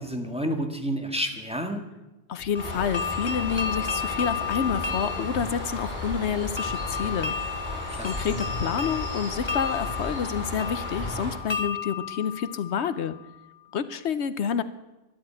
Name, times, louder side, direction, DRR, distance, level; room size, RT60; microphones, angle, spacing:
voice 1, 0.0-1.8 7.7-8.3, equal, 5° right, 3 dB, 1.7 m, -31 dB
voice 2, 2.3-7.3 8.0-13.1 13.7-14.6, left 7 dB, 80° left, 13 dB, 1.1 m, -28 dB
Bird, 2.6-11.4, left 1 dB, 45° left, 5.0 m, -34 dB
sound 1, 2.6-13.4, left 7 dB, 30° left, 0.7 m, -34 dB
13.5 x 12.0 x 8.7 m, 1.0 s
omnidirectional pair, 1.1 m